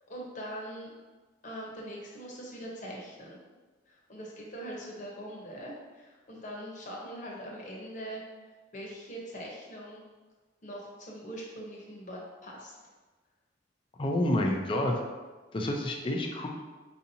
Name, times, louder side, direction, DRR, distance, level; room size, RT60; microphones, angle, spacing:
voice 1, 0.1-0.9 1.4-3.4 3.9-8.2 8.7-10.0 10.6-12.8, equal, 45° left, -3 dB, 0.9 m, -42 dB
voice 2, 14.0-14.9 15.5-16.5, left 1 dB, 30° left, 1 dB, 0.4 m, -28 dB
4.7 x 2.8 x 2.7 m, 1.3 s
head